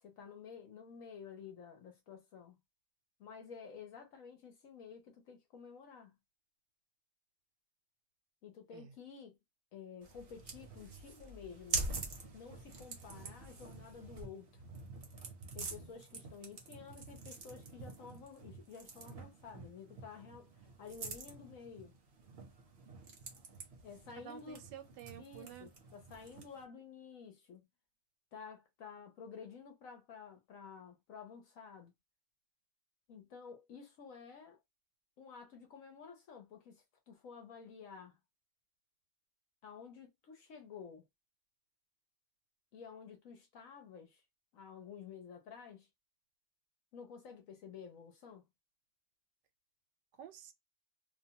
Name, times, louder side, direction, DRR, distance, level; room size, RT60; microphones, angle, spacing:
voice 1, 0.0-2.6 3.2-6.1 8.4-9.4 9.7-11.9 12.3-14.5 15.5-21.9 23.8-24.6 25.2-27.7 28.3-31.9 33.1-34.6 35.2-38.2 39.6-41.0 42.7-44.2 44.5-45.9 46.9-48.5, left 6 dB, 60° left, 1.0 m, -52 dB
sound 1, 10.0-26.6, right 3 dB, 45° right, 0.8 m, -46 dB
voice 2, 24.2-25.7 50.2-50.5, right 9 dB, 85° right, 1.3 m, -51 dB
2.8 x 2.2 x 2.8 m
omnidirectional pair, 1.8 m